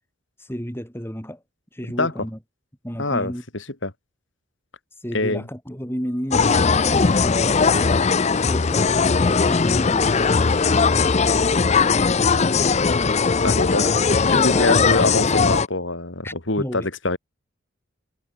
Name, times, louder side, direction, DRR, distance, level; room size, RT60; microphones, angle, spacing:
voice 1, 0.4-1.4 1.7-2.4 2.8-3.4 5.0-7.9 8.3-8.9 9.2-11.5 11.8-12.5 14.3-14.9 16.2-16.9, equal, 10° left, 7.2 m, -33 dB
voice 2, 3.0-3.3 3.8-3.9 5.1-5.4 13.4-13.9 14.2-17.2, left 2 dB, 65° left, 2.9 m, -24 dB
sound 1, 6.3-15.7, left 5 dB, 35° left, 0.5 m, -19 dB
head